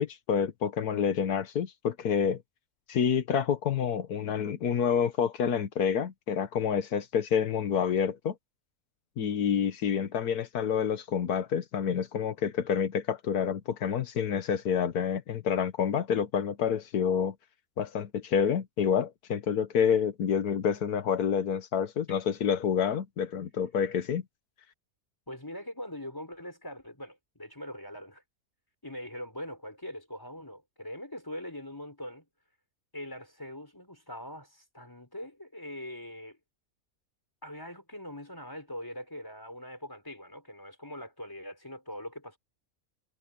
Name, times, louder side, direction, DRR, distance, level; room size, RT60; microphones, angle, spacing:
voice 1, 0.0-2.4 2.9-8.3 9.2-17.3 17.8-24.2, left 7 dB, 90° left, 1.7 m, -28 dB
voice 2, 25.3-28.2 28.8-32.2 32.9-36.4 37.4-42.4, left 1 dB, 15° left, 5.0 m, -42 dB
omnidirectional pair, 1.6 m